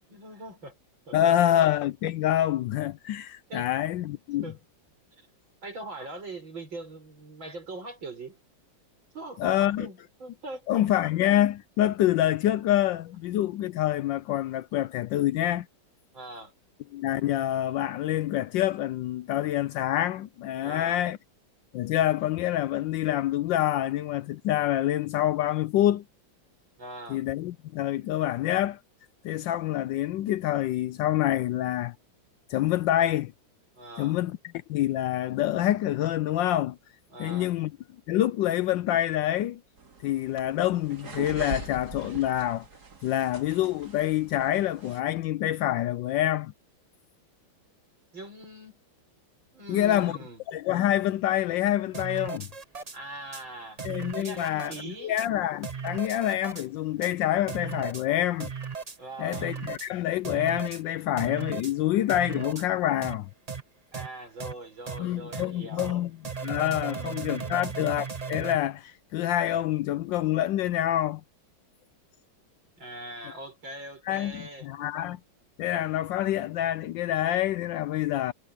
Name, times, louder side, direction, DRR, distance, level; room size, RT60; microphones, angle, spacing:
voice 1, 0.1-0.7 1.1-1.4 3.5-3.7 4.4-4.6 5.2-5.3 5.6-8.4 9.1-10.8 16.1-16.5 20.6-21.0 26.8-27.2 33.8-34.2 37.1-37.5 48.1-48.8 49.5-50.4 52.9-53.8 54.2-55.2 59.0-59.6 63.9-66.1 66.8-67.6 72.8-74.7, right 2 dB, 75° right, 7.4 m, -42 dB
voice 2, 1.1-4.5 9.4-9.9 10.7-15.7 16.9-21.2 21.7-26.0 27.1-28.8 29.2-31.9 32.5-33.3 34.0-34.4 34.7-36.8 37.2-37.7 38.1-39.6 40.0-42.7 43.0-46.5 49.7-50.2 50.5-52.5 53.8-58.5 59.2-63.3 65.0-66.1 66.4-71.2 74.1-75.2 75.6-78.3, left 12 dB, 75° left, 1.2 m, -26 dB
sound 1, 39.8-45.0, right 4 dB, 55° right, 2.7 m, -42 dB
sound 2, 51.9-53.0 53.3-53.4 53.8-54.8 55.2-55.3 55.6-56.7 57.0-57.1 57.5-58.0 58.4-59.0 59.3-59.9 60.2-60.8 61.2-61.7 62.1-62.7 63.0-63.2 63.5-63.6 63.9-64.1 64.4-64.5 64.9-65.0 65.3-65.5 65.8-65.9 66.2-68.6, right 6 dB, 30° right, 0.8 m, -36 dB
omnidirectional pair, 2.1 m